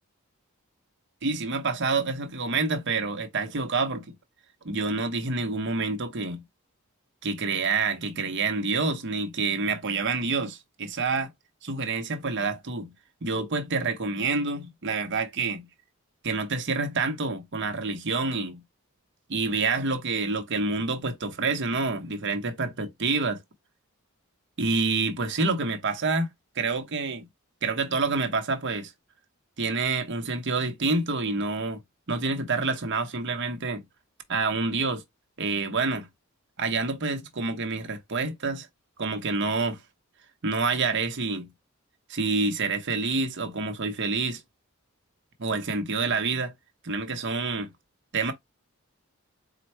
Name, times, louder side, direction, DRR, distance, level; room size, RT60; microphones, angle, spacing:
voice 1, 1.2-4.1 4.6-6.4 7.2-11.3 11.6-12.9 13.2-15.7 16.2-18.6 19.3-23.4 24.6-26.3 26.6-27.3 27.6-28.9 29.6-31.8 32.1-33.8 34.3-35.0 35.4-36.1 36.6-38.7 39.0-39.8 40.4-41.5 42.1-44.4 45.4-46.5 46.8-47.7 48.1-48.3, right 3 dB, 55° right, 0.8 m, -27 dB
4.3 x 2.2 x 4.3 m
head